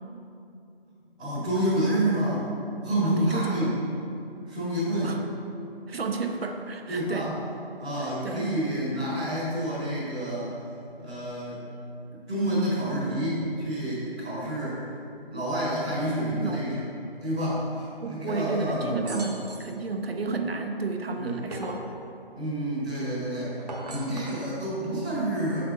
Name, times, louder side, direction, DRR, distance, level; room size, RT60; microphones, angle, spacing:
voice 1, 1.2-2.4 2.8-3.7 4.4-5.2 6.9-7.3 7.8-10.5 11.0-11.6 12.1-14.8 15.3-16.8 17.2-19.2 21.1-21.4 22.3-23.5 23.9-25.6, right 1 dB, ahead, -29 dB, 0.7 m, -28 dB
voice 2, 3.0-3.7 5.0-5.2 5.9-7.3 8.0-8.4 16.4-16.6 18.0-21.9, right 4 dB, 70° right, 4 dB, 0.7 m, -32 dB
sound 1, 19.0-19.8 21.1-21.9 23.5-24.5, right 2 dB, 40° right, 0.9 m, -39 dB
6.3 x 5.8 x 4.1 m, 2.6 s
figure-of-eight pair, 165°, 31 cm